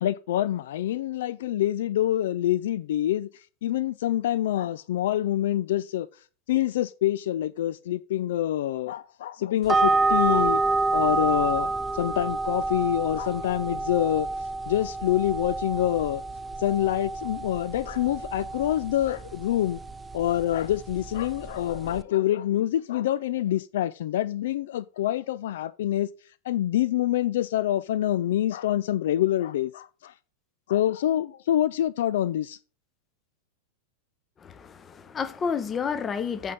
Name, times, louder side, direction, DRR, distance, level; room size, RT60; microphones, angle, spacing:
voice 1, 0.0-10.6 10.9-16.2 16.6-19.8 20.1-26.1 26.4-30.1 30.7-32.6, left 12 dB, 55° left, 0.3 m, -26 dB
sound 1, 9.7-22.0, right 3 dB, 15° right, 0.5 m, -28 dB
voice 2, 34.4-36.5, left 6 dB, 20° left, 0.8 m, -30 dB
8.3 x 5.5 x 5.2 m
figure-of-eight pair, 90°, 0 cm